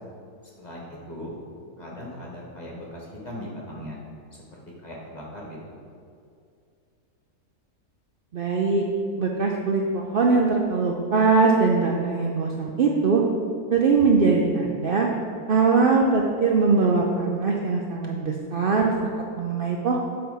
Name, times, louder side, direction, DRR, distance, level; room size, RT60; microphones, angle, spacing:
voice 1, 0.5-1.4 1.8-4.0 4.8-5.7, equal, 30° left, -3 dB, 1.3 m, -38 dB
voice 2, 8.3-8.8 9.2-13.2 13.7-15.1 15.5-18.9 19.4-20.0, right 4 dB, 80° right, 0 dB, 0.5 m, -21 dB
7.6 x 4.3 x 5.5 m, 2.4 s
omnidirectional pair, 1.6 m